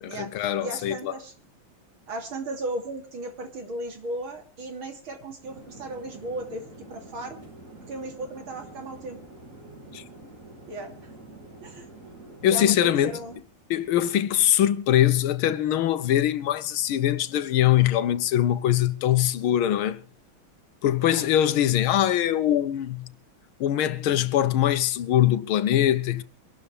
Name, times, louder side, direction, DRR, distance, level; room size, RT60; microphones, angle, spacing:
voice 1, 0.0-1.1 9.9-10.0 12.4-13.1 13.7-20.0 20.8-23.1 23.6-26.2, left 11 dB, 85° left, 1.7 m, -22 dB
voice 2, 0.6-1.3 2.1-7.4 7.9-9.2 10.7-11.1 11.6-11.9 12.5-13.4 21.0-21.3, right 1 dB, 80° right, 3.6 m, -36 dB
Conversation / Chatter / Fixed-wing aircraft airplane, 5.4-13.4, right 2 dB, 40° right, 4.7 m, -47 dB
24.5 x 12.5 x 3.4 m
omnidirectional pair, 2.2 m